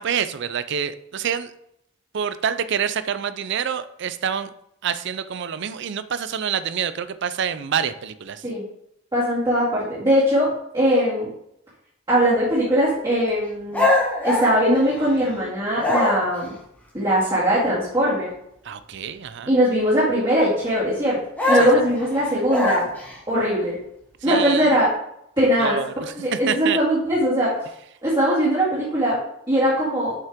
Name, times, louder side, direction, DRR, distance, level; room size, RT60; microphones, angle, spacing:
voice 1, 0.0-1.5 2.1-4.5 4.8-8.4 18.6-19.5 21.6-21.7 24.2-24.8 25.6-26.8, right 7 dB, 60° right, 13 dB, 0.4 m, -27 dB
voice 2, 9.1-11.3 12.1-13.9 14.2-16.5 16.9-18.3 19.5-21.2 21.5-22.8 23.3-23.8 24.2-24.9 25.4-25.8 26.1-27.7 28.0-29.2 29.5-30.1, equal, 20° right, -10 dB, 2.3 m, -20 dB
sound 1, 13.7-15.3 15.8-16.4 21.4-23.2, left 2 dB, 10° left, 1.5 m, -22 dB
7.4 x 5.4 x 3.6 m, 0.76 s
head